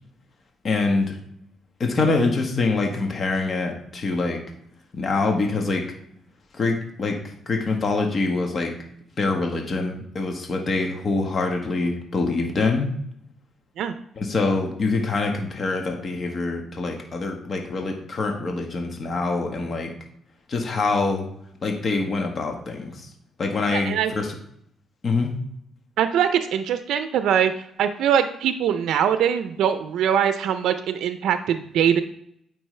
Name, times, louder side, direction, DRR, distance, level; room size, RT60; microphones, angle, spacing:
voice 1, 0.6-1.2 1.8-4.4 4.9-5.8 6.5-7.2 7.5-8.7 9.2-12.9 14.2-19.9 20.5-21.2 21.6-23.1 23.4-24.3 25.0-25.3, left 3 dB, 45° left, 2 dB, 1.4 m, -25 dB
voice 2, 23.7-24.1 26.0-27.5 27.8-32.0, right 9 dB, 80° right, 9 dB, 0.5 m, -22 dB
8.7 x 5.4 x 3.3 m, 0.70 s
cardioid pair, 90°, 0 cm